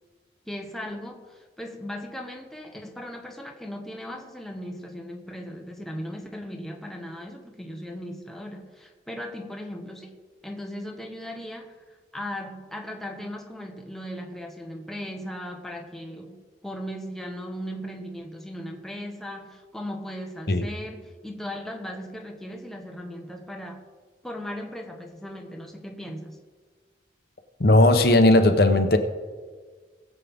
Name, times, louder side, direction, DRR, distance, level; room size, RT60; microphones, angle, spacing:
voice 1, 0.5-23.8 24.2-26.4, equal, ahead, 1 dB, 0.9 m, -37 dB
voice 2, 27.6-29.0, left 1 dB, 55° left, 7 dB, 1.0 m, -17 dB
20.5 x 7.5 x 3.6 m, 1.5 s
head